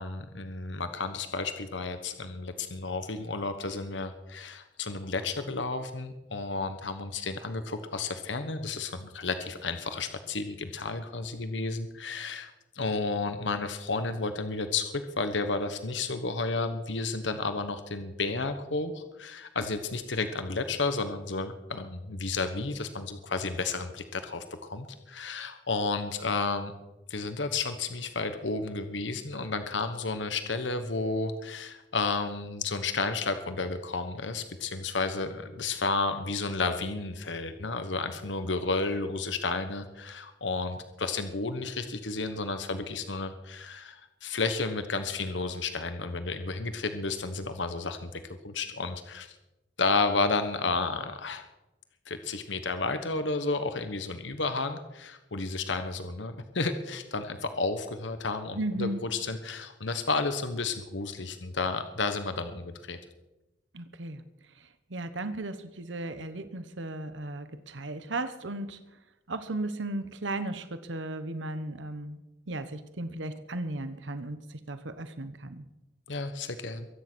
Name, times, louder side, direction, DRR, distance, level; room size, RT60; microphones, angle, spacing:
voice 1, 0.0-26.7 27.1-49.4 49.8-51.4 52.1-63.0 76.1-76.9, left 3 dB, 80° left, 9 dB, 1.3 m, -32 dB
voice 2, 58.5-59.0 63.7-64.2 64.5-68.8 69.3-72.2 72.5-75.6, right 2 dB, 90° right, 11 dB, 1.2 m, -35 dB
23.0 x 10.0 x 6.3 m, 1.0 s
head